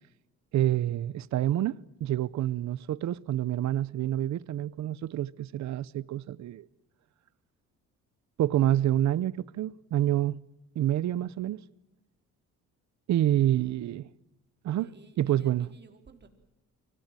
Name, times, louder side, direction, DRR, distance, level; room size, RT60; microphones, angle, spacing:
voice 1, 0.5-6.7 8.4-10.4 10.8-11.6 13.1-14.1 14.6-14.9 15.2-15.7, right 12 dB, 65° right, 0.8 m, -27 dB
voice 2, 13.6-14.1 14.7-16.3, right 4 dB, 35° right, 4.2 m, -56 dB
24.5 x 18.0 x 9.0 m
cardioid pair, 90°, 30 cm